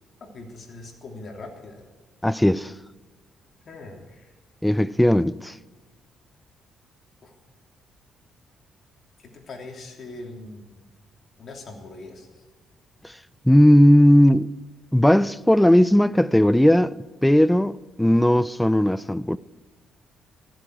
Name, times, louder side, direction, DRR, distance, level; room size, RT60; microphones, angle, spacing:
voice 1, 0.2-1.8 3.6-4.3 7.2-7.3 9.2-10.8 11.4-12.4, left 2 dB, 50° left, 3.1 m, -41 dB
voice 2, 2.2-2.7 4.6-5.5 13.0-13.1 13.4-14.5 14.9-16.9 17.2-19.4, equal, 5° left, 0.4 m, -17 dB
14.5 x 14.0 x 4.8 m
cardioid pair, 100°, 0 cm